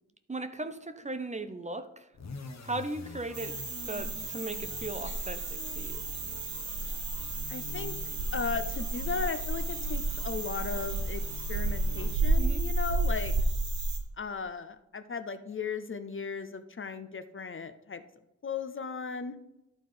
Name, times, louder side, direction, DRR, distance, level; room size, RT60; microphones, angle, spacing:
voice 1, 0.3-2.1 2.6-3.6 3.9-6.0 12.4-12.6, right 2 dB, 25° right, 9 dB, 0.6 m, -37 dB
sound 1, 2.1-12.6, left 3 dB, 60° left, 1.0 m, -47 dB
sound 2, 3.3-14.0, right 2 dB, 70° right, 1.6 m, -32 dB
voice 2, 7.5-8.0 8.3-11.2 11.5-13.3 14.2-18.0 18.4-19.4, left 5 dB, 45° left, 10 dB, 0.6 m, -36 dB
11.5 x 4.2 x 5.0 m, 0.92 s
wide cardioid pair, 75°, 30 cm